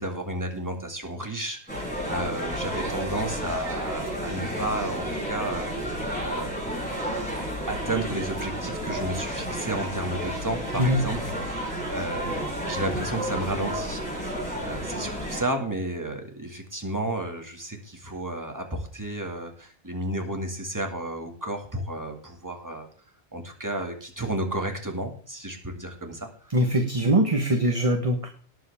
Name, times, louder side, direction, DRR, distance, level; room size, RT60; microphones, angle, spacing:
voice 1, 0.0-5.7 6.2-7.0 7.7-22.9 23.3-26.5, right 1 dB, 20° right, 4 dB, 2.2 m, -32 dB
sound 1, 1.7-15.4, equal, 10° left, 6.9 m, -31 dB
voice 2, 26.5-28.3, right 1 dB, 35° right, 4 dB, 1.3 m, -22 dB
18.5 x 7.7 x 3.5 m, 0.42 s
omnidirectional pair, 1.1 m